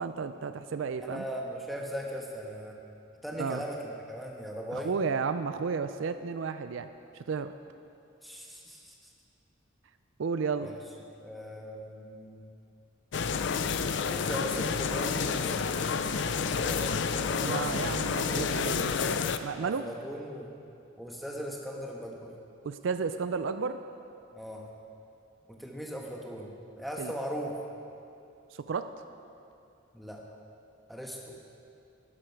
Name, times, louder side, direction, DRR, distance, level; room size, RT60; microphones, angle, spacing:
voice 1, 0.0-1.3 3.4-3.6 4.7-6.9 7.3-7.5 10.2-10.7 17.4-18.9 19.4-19.9 22.6-23.8 27.0-27.1 28.7-28.9, right 5 dB, 65° right, 10 dB, 0.4 m, -32 dB
voice 2, 1.0-2.8 3.2-3.8 4.1-4.9 8.2-8.9 10.6-10.7 11.2-12.4 14.0-15.7 16.5-18.5 19.6-20.5 21.0-22.3 24.3-24.6 25.6-27.5 29.9-30.2 30.9-31.3, equal, ahead, -1 dB, 1.2 m, -39 dB
sound 1, 13.1-19.4, left 5 dB, 55° left, 0.5 m, -29 dB
12.0 x 11.0 x 4.7 m, 2.6 s
head